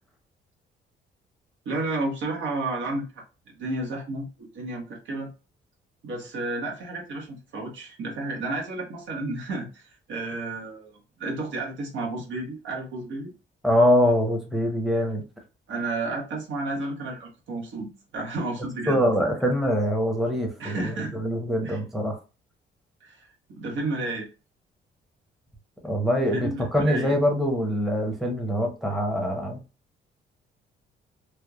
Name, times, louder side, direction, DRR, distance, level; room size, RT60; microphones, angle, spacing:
voice 1, 1.6-4.3 4.5-5.3 6.0-13.3 15.7-19.0 20.6-21.2 21.6-21.8 23.0-24.3 26.3-27.2, right 2 dB, 70° right, 0 dB, 1.1 m, -32 dB
voice 2, 13.6-15.3 18.9-22.2 25.8-29.6, equal, ahead, 1 dB, 0.8 m, -24 dB
3.2 x 2.1 x 2.3 m, 0.31 s
cardioid pair, 90°, 20 cm